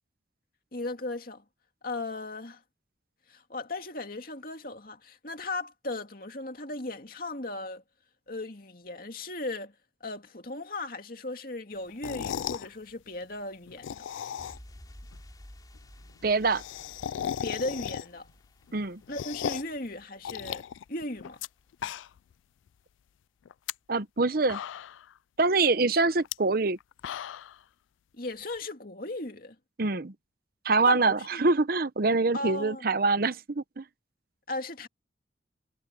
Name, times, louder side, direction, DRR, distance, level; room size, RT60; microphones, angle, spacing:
voice 1, 0.7-1.4 1.8-2.6 3.3-7.8 8.3-9.7 10.0-14.0 17.4-18.3 19.1-21.4 28.2-29.6 30.9-31.4 32.3-32.9 34.5-34.9, left 2 dB, 50° left, 2.4 m, -37 dB
sound 1, 11.9-12.7 13.7-14.8 15.1-15.2 15.4-15.5 15.7-15.8 16.1-18.3 18.7-19.8 20.2-21.5 21.7-22.3 22.7-22.8 23.5-23.7 24.2-24.3 24.5-25.1 26.2-26.3 26.8-27.6, left 9 dB, 85° left, 0.3 m, -36 dB
sound 2, 14.4-20.9 21.1-21.3, equal, 20° left, 5.1 m, -53 dB
voice 2, 16.2-16.6 18.7-19.0 23.9-24.6 25.4-26.8 29.8-30.1 30.6-33.8, right 3 dB, 50° right, 0.8 m, -25 dB
head